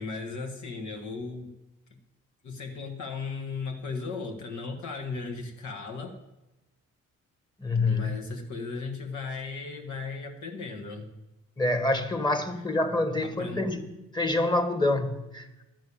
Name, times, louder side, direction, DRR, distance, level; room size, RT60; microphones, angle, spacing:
voice 1, 0.0-1.5 2.4-6.2 7.8-11.1 12.5-12.6 13.2-13.7, left 4 dB, 70° left, 1.7 m, -36 dB
voice 2, 7.6-8.1 11.6-13.8 14.1-15.5, left 2 dB, 15° left, 1.4 m, -26 dB
11.5 x 6.2 x 8.6 m
cardioid pair, 90°, 30 cm